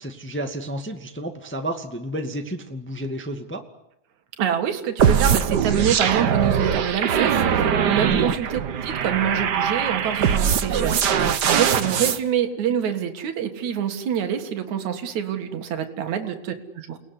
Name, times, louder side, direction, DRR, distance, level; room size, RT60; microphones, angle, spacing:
voice 1, 0.0-3.6 8.1-8.2, right 1 dB, 5° left, 4 dB, 1.6 m, -31 dB
voice 2, 4.4-17.0, right 9 dB, 70° right, 6 dB, 3.2 m, -26 dB
sound 1, 5.0-12.2, right 7 dB, 55° right, 1.1 m, -21 dB
29.5 x 19.5 x 9.9 m, 0.84 s
omnidirectional pair, 3.4 m